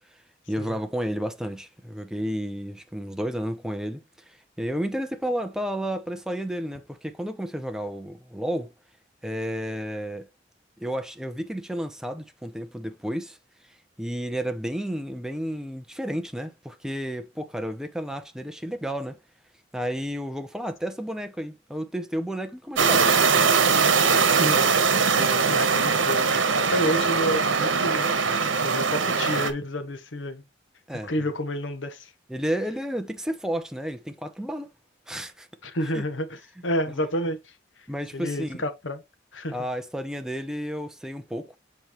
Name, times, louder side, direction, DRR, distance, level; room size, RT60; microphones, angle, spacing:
voice 1, 0.5-4.0 4.3-8.7 9.2-10.3 10.8-13.4 14.0-19.2 19.7-23.2 30.9-31.1 32.3-34.7 35.1-35.5 35.9-36.0 37.9-38.6 39.5-41.6, equal, 5° right, 0.8 m, -31 dB
sound 1, 22.8-29.5, right 5 dB, 85° right, 1.1 m, -21 dB
voice 2, 24.4-30.4 31.0-32.1 35.6-37.5 38.1-39.0 39.3-39.6, equal, 75° left, 1.1 m, -30 dB
7.0 x 4.4 x 3.1 m
head